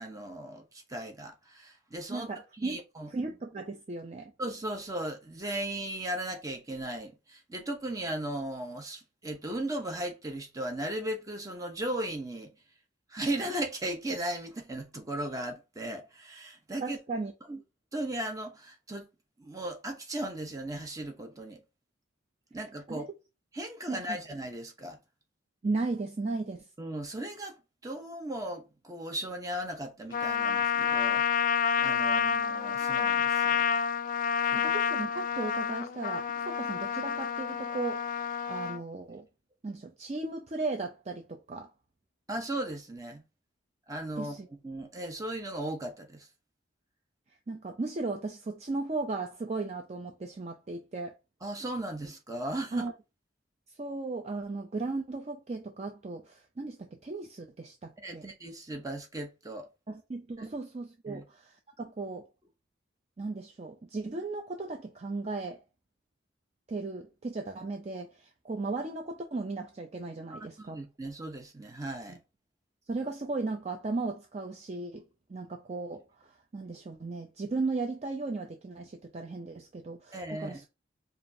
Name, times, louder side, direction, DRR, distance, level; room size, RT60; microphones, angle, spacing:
voice 1, 0.0-2.3 2.6-3.1 4.4-12.5 13.1-17.0 17.5-17.6 17.9-19.1 19.4-21.6 22.5-23.1 23.5-25.0 26.8-27.6 27.8-31.2 31.8-33.6 42.3-43.2 43.9-44.3 44.6-46.3 51.4-52.9 58.0-59.7 60.4-60.5 61.1-61.2 70.3-72.2 80.1-80.7, right 1 dB, 20° right, 0.8 m, -37 dB
voice 2, 2.1-2.8 3.1-4.3 16.8-17.3 22.9-23.0 23.9-24.2 25.6-26.6 32.1-32.2 34.5-38.2 38.5-39.3 39.6-41.7 44.2-44.5 47.5-51.1 52.7-52.9 53.8-58.3 59.9-62.3 63.2-65.6 66.7-70.8 72.1-72.2 72.9-80.7, right 3 dB, 35° right, 0.4 m, -36 dB
Trumpet, 30.1-38.8, left 7 dB, 45° left, 0.3 m, -29 dB
4.9 x 2.5 x 2.6 m
head